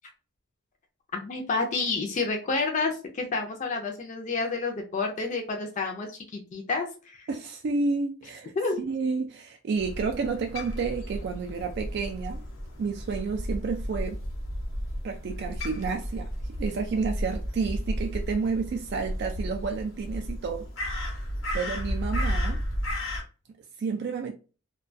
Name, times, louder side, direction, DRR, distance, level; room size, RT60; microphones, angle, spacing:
voice 1, 1.1-7.3 8.6-8.8, left 3 dB, 40° left, 0.4 m, -29 dB
voice 2, 7.3-8.5 8.8-12.4 12.8-14.2 15.0-16.3 16.6-20.7 21.5-22.6 23.8-24.3, right 4 dB, 55° right, 0.3 m, -30 dB
Crow, 9.8-23.2, equal, 80° left, 0.8 m, -33 dB
2.3 x 2.2 x 2.5 m
head